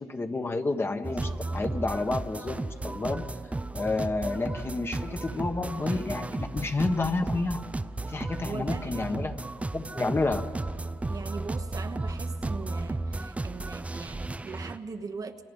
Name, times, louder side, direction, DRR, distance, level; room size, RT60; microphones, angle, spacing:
voice 1, 0.0-3.2 3.7-7.6 8.1-9.4 9.7-10.4, left 3 dB, 25° left, 1.5 m, -30 dB
sound 1, 1.0-14.8, right 2 dB, 15° right, 0.6 m, -34 dB
voice 2, 8.4-9.3 11.1-15.4, right 4 dB, 40° right, 1.1 m, -40 dB
29.0 x 28.0 x 5.5 m
cardioid pair, 85°, 9 cm